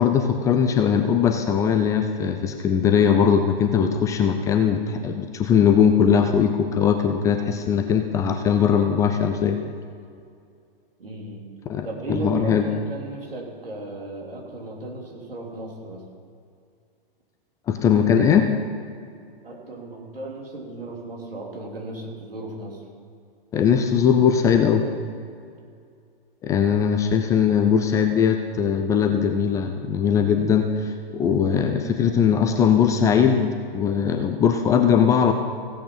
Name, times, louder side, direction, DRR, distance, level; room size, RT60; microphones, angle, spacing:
voice 1, 0.0-9.6 11.7-12.7 17.7-18.5 23.5-24.8 26.4-35.3, left 7 dB, 10° left, 6 dB, 0.4 m, -20 dB
voice 2, 11.0-11.5 11.8-16.0 19.4-22.8 31.6-31.9, right 2 dB, 75° right, -1 dB, 3.2 m, -35 dB
16.0 x 8.4 x 5.5 m, 2.3 s
figure-of-eight pair, 110°, 29 cm